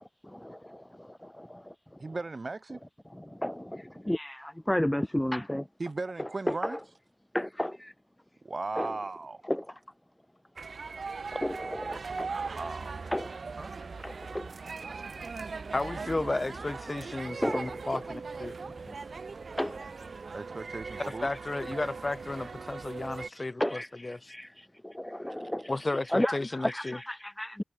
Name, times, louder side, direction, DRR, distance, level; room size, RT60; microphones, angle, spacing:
voice 1, 0.2-2.0 3.3-5.7 6.2-6.8 7.3-7.9 8.8-8.9 9.4-9.8 11.3-12.3 13.1-13.3 14.0-14.5 17.4-18.0 18.7-18.8 19.5-19.9 23.6-25.7 26.1-27.6, left 1 dB, 10° left, 0.7 m, -33 dB
voice 2, 2.0-2.8 5.8-6.8 8.4-9.4 12.4-13.0 13.6-13.7 20.3-21.3 23.4-23.5, right 3 dB, 50° right, 4.2 m, -37 dB
sound 1, 10.6-23.3, right 4 dB, 80° right, 2.6 m, -39 dB
voice 3, 15.7-18.6 21.2-24.3 25.7-27.0, left 2 dB, 35° left, 0.4 m, -33 dB
wide cardioid pair, 95°, 0 cm